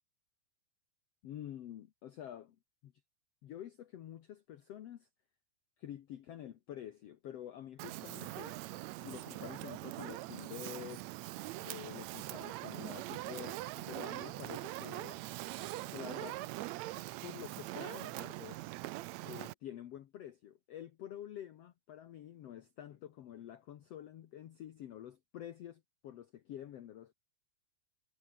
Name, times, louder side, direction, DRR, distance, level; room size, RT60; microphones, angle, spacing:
voice 1, 1.2-2.6 2.8-2.9 3.4-5.1 5.8-8.6 9.0-11.1 11.6-15.2 15.9-16.4 17.2-18.6 19.2-27.1, left 11 dB, 60° left, 1.8 m, -48 dB
Fire, 7.8-19.5, right 18 dB, 85° right, 1.6 m, -42 dB
omnidirectional pair, 3.9 m